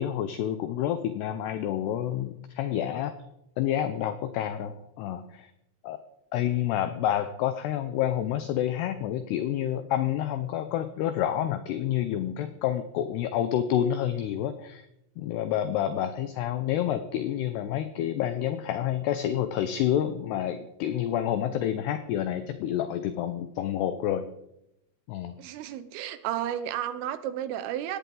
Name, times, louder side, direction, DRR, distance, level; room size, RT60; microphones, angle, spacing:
voice 1, 0.0-3.2 3.6-5.5 5.8-6.0 6.3-14.9 15.2-24.3 25.1-25.4, left 11 dB, 80° left, 10 dB, 2.4 m, -28 dB
voice 2, 25.4-28.0, right 11 dB, 90° right, 12 dB, 3.7 m, -32 dB
18.5 x 16.5 x 3.9 m, 0.84 s
omnidirectional pair, 5.7 m